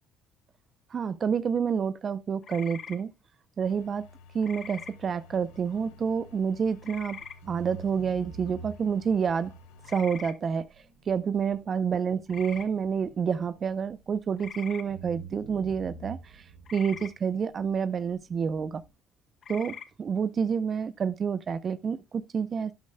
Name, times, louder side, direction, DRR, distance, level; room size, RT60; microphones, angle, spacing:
voice 1, 0.9-3.1 3.6-4.1 4.3-7.2 7.5-9.5 9.9-10.7 11.1-16.4 16.7-18.8 19.5-22.7, right 6 dB, 45° right, 0.6 m, -28 dB
sound 1, 2.4-3.0 4.4-4.9 6.8-7.4 9.8-10.3 12.3-12.7 14.4-14.8 16.7-17.1 19.4-19.9, left 7 dB, 50° left, 1.1 m, -42 dB
sound 2, 3.6-10.2, left 4 dB, 85° left, 1.3 m, -53 dB
sound 3, 5.3-7.0 7.4-14.5 14.9-18.9, right 5 dB, 90° right, 3.4 m, -48 dB
12.0 x 8.4 x 2.2 m
supercardioid pair, 70°, 0 cm